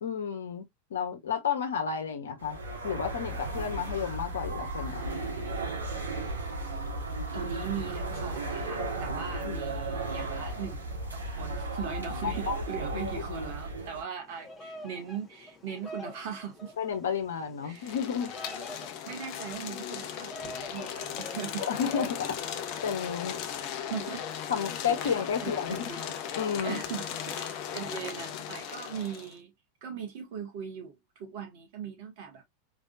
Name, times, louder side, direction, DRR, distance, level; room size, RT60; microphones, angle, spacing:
voice 1, 0.0-2.6 2.8-5.1 9.3-9.6 12.2-12.6 12.9-13.2 16.8-18.3 21.6-22.5 22.8-23.4 24.5-25.8 26.3-26.8, left 7 dB, 65° left, 1.3 m, -32 dB
sound 1, 2.4-14.0, right 2 dB, 80° right, 2.9 m, -35 dB
voice 2, 7.3-10.9 11.1-16.7 17.6-18.0 19.0-21.8 23.9-24.3 24.8-26.1 26.6-29.5 29.8-32.4, right 7 dB, 50° right, 2.0 m, -39 dB
Bird vocalization bird call bird song, 14.3-22.3, left 1 dB, 15° left, 1.4 m, -45 dB
sound 2, 17.7-29.3, left 9 dB, 45° left, 0.8 m, -37 dB
4.7 x 3.5 x 2.7 m
figure-of-eight pair, 90°, 0 cm